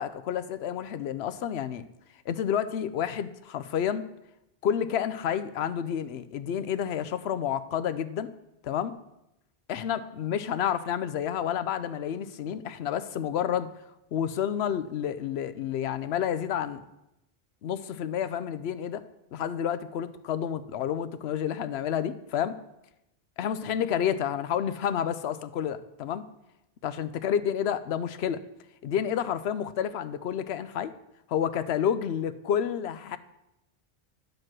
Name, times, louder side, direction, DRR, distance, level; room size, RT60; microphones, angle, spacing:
voice 1, 0.0-1.8 2.3-4.0 4.6-8.3 8.6-8.9 9.7-13.7 14.1-16.8 17.6-19.0 19.3-22.6 23.4-26.2 26.8-28.4 28.8-30.9 31.3-33.2, left 9 dB, 85° left, 13 dB, 0.9 m, -30 dB
10.5 x 5.2 x 6.1 m, 0.87 s
omnidirectional pair, 1.0 m